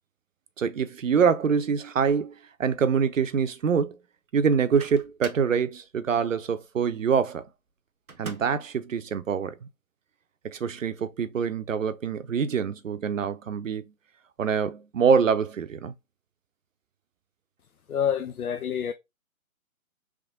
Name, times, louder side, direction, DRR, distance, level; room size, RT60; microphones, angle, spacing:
voice 1, 0.6-2.3 2.6-4.0 4.3-7.5 8.2-9.7 10.4-13.8 14.4-15.9, right 6 dB, 65° right, 0.7 m, -25 dB
Microwave oven, 4.5-5.6 8.1-8.7, right 4 dB, 90° right, 0.8 m, -42 dB
voice 2, 17.9-18.9, left 8 dB, 90° left, 0.5 m, -27 dB
3.6 x 3.3 x 3.6 m
figure-of-eight pair, 135°, 42 cm